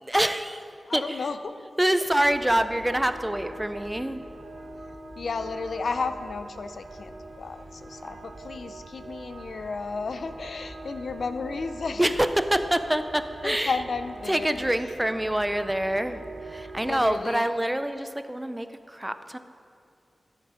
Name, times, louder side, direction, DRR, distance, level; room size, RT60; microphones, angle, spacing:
voice 1, 0.0-0.6 0.9-1.2 1.8-4.3 12.0-13.8 14.3-19.4, right 1 dB, 10° right, 10 dB, 0.5 m, -26 dB
voice 2, 0.9-1.5 5.2-7.1 7.4-12.2 13.4-14.7 16.8-17.5, left 4 dB, 75° left, 10 dB, 0.5 m, -33 dB
sound 1, 2.2-17.0, right 2 dB, 85° right, 1.0 m, -43 dB
12.5 x 7.9 x 5.0 m, 2.5 s
cardioid pair, 65°, 0 cm